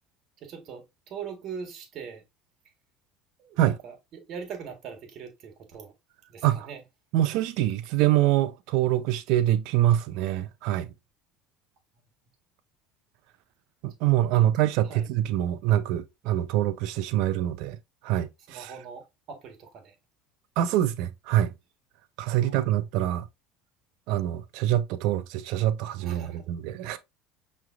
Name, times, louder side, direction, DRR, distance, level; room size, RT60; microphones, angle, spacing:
voice 1, 0.4-2.2 3.4-5.9 6.3-6.8 14.4-15.1 16.2-16.4 18.5-19.9 22.3-22.7 26.0-26.5 26.8-26.9, right 6 dB, 55° right, 1.5 m, -42 dB
voice 2, 7.1-10.9 13.8-17.8 18.0-18.7 20.6-21.5 22.2-23.3 24.1-27.0, right 13 dB, 70° right, 0.5 m, -25 dB
5.7 x 3.2 x 2.5 m
supercardioid pair, 100°, 0 cm